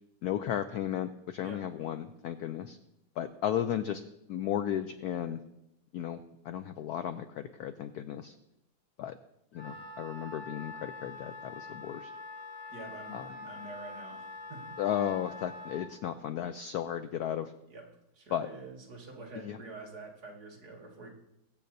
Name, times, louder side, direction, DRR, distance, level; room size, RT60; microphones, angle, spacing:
voice 1, 0.2-2.8 3.2-4.0 4.3-5.4 5.9-6.2 6.4-8.3 9.0-9.2 9.5-12.1 13.1-13.2 14.8-17.5 18.3-18.5 19.4-19.6, left 10 dB, 85° left, 10 dB, 0.8 m, -34 dB
Wind instrument woodwind instrument, 9.5-15.9, left 2 dB, 25° left, 3.1 m, -45 dB
voice 2, 12.7-14.8 17.7-17.9 18.1-21.1, right 2 dB, 50° right, 0 dB, 2.4 m, -47 dB
22.0 x 8.5 x 2.7 m, 0.86 s
omnidirectional pair, 2.2 m